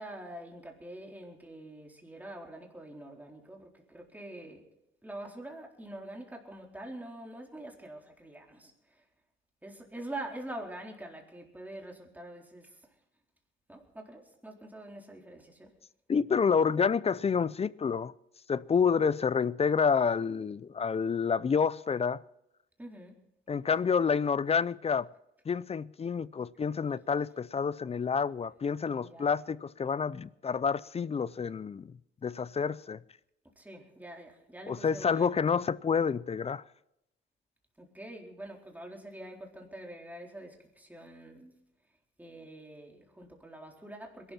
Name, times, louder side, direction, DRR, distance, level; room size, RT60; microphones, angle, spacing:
voice 1, 0.0-4.7 5.0-9.0 9.6-12.8 13.7-15.7 22.8-23.2 29.0-29.3 33.6-35.3 37.8-41.5 42.2-44.3, right 1 dB, 10° right, 4.2 m, -45 dB
voice 2, 16.1-18.1 18.5-22.2 23.5-25.1 25.5-31.9 32.2-33.0 34.7-36.6, left 6 dB, 30° left, 0.5 m, -28 dB
22.0 x 12.5 x 4.3 m
cardioid pair, 90°, 20 cm